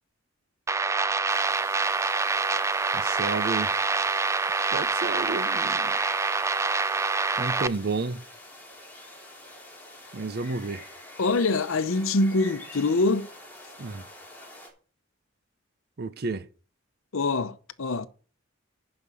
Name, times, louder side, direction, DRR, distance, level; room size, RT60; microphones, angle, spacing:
sound 1, 0.7-7.7, right 4 dB, 15° right, 0.4 m, -26 dB
sound 2, 1.3-14.7, left 1 dB, 10° left, 3.0 m, -46 dB
voice 1, 2.9-3.7 4.7-6.0 7.4-8.2 10.1-10.8 13.8-14.0 16.0-16.4, right 3 dB, 50° right, 0.7 m, -31 dB
voice 2, 11.2-13.3 17.1-18.1, left 3 dB, 90° left, 0.8 m, -24 dB
11.0 x 5.2 x 6.2 m
head